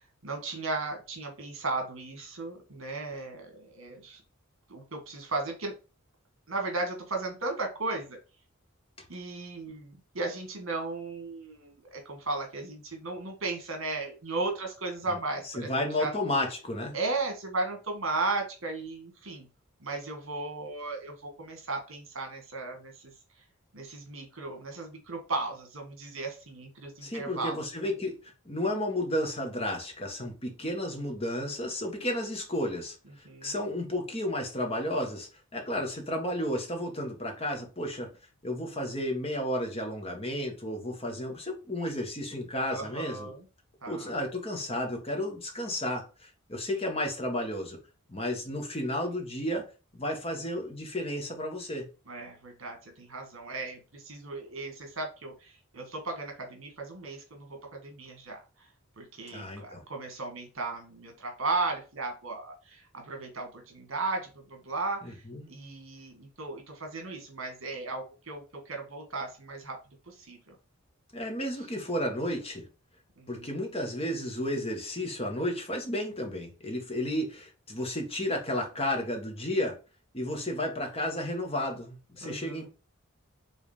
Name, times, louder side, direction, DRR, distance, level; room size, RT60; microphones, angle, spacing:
voice 1, 0.2-4.2 4.7-5.7 6.5-8.2 9.1-16.1 16.9-19.5 19.8-23.1 23.7-27.6 33.3-33.7 42.7-43.4 43.8-44.1 52.1-58.4 59.0-65.2 65.5-69.8 70.1-70.6 73.2-73.6 82.2-82.7, right 3 dB, 70° right, 1.9 m, -36 dB
voice 2, 15.4-16.9 27.0-38.1 38.4-43.3 43.9-47.8 48.1-49.7 49.9-51.9 59.3-59.8 65.0-65.5 71.1-72.6 73.3-79.8 80.1-82.7, left 1 dB, 25° left, 1.5 m, -32 dB
5.5 x 3.7 x 5.0 m
head